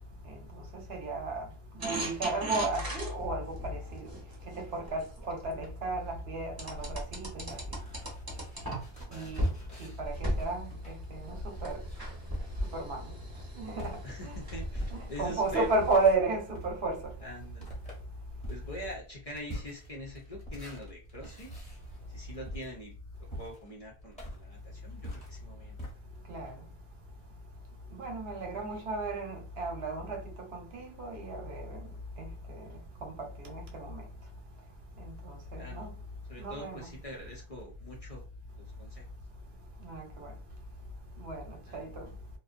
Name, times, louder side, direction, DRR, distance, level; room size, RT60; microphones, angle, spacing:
voice 1, 0.3-1.5 1.8-4.1 4.5-7.6 9.1-9.4 9.8-11.8 12.7-13.0 13.6-14.4 14.9-17.0 26.3-26.5 27.9-30.2 30.5-31.8 32.2-32.7 33.0-34.0 35.0-35.9 36.4-36.9 39.8-40.3 41.2-42.0, right 3 dB, 70° right, 0.9 m, -34 dB
sound 1, 1.8-5.7 6.6-9.0 9.4-9.6 10.0-16.1, equal, 25° right, 0.7 m, -37 dB
sound 2, 6.6-15.4 15.8-25.9, equal, 5° left, 0.9 m, -45 dB
voice 2, 9.0-9.4 14.0-15.8 17.2-17.8 18.5-21.5 22.1-22.9 23.4-25.8 28.5-28.8 35.5-35.9 36.3-38.2 38.6-39.0 41.7-41.9, equal, 45° left, 0.5 m, -44 dB
2.5 x 2.1 x 2.4 m
omnidirectional pair, 1.1 m